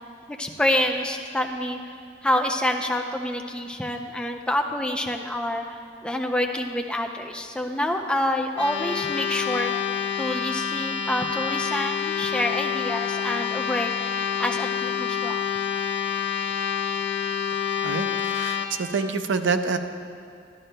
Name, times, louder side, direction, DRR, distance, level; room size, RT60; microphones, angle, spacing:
voice 1, 0.4-1.8 2.2-9.7 10.2-13.9 14.4-15.4, left 1 dB, 5° left, 3 dB, 0.4 m, -27 dB
sound 1, 8.5-18.7, left 8 dB, 70° left, 0.5 m, -27 dB
voice 2, 17.8-19.8, right 4 dB, 75° right, 8 dB, 0.5 m, -27 dB
13.5 x 11.0 x 2.2 m, 2.4 s
head